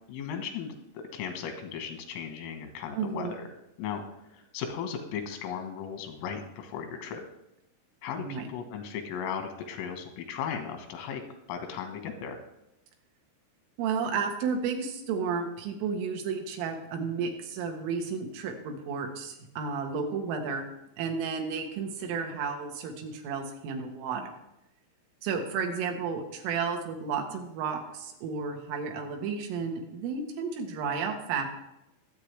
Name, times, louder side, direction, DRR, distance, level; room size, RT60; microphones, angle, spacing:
voice 1, 0.1-3.5 3.8-7.2 8.0-11.2 11.5-12.4, left 7 dB, 85° left, 6 dB, 4.0 m, -36 dB
voice 2, 3.0-3.3 8.2-8.5 13.8-20.7 21.0-24.3 25.2-31.4, right 5 dB, 80° right, 3 dB, 4.0 m, -32 dB
22.5 x 8.4 x 3.4 m, 0.88 s
omnidirectional pair, 5.7 m